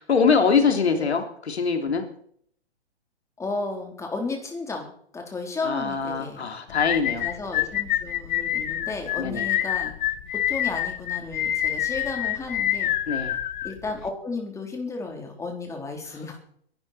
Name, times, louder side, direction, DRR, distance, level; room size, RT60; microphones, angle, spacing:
voice 1, 0.1-2.0 5.6-7.3 9.2-9.5 13.1-13.3, left 5 dB, 70° left, 5 dB, 3.2 m, -23 dB
voice 2, 3.4-6.5 7.2-9.9 10.3-13.0 13.6-16.4, left 3 dB, 10° left, 2 dB, 3.4 m, -33 dB
sound 1, 6.7-14.1, left 12 dB, 45° left, 1.1 m, -27 dB
22.0 x 12.0 x 4.3 m, 0.63 s
figure-of-eight pair, 120°, 33 cm